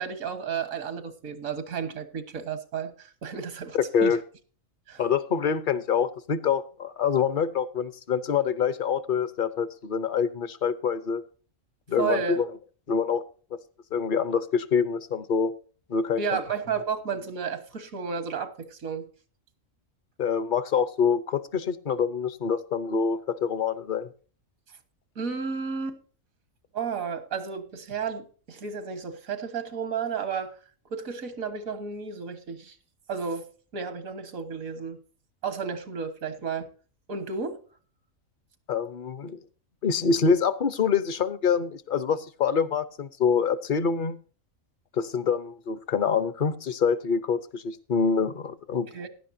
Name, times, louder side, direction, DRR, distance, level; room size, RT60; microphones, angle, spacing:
voice 1, 0.0-4.2 4.9-5.0 12.0-12.4 16.2-19.1 25.2-26.0 26.7-30.6 30.9-32.8 33.1-35.0 35.4-36.7 37.1-37.6 48.9-49.1, right 6 dB, 90° right, 1.8 m, -32 dB
voice 2, 3.7-4.2 5.0-11.2 11.9-12.5 12.9-13.2 13.5-13.6 13.9-15.5 15.9-16.2 20.2-24.1 38.7-39.4 39.8-44.2 44.9-48.9, left 6 dB, 45° left, 0.8 m, -26 dB
16.0 x 11.0 x 2.7 m
omnidirectional pair, 1.4 m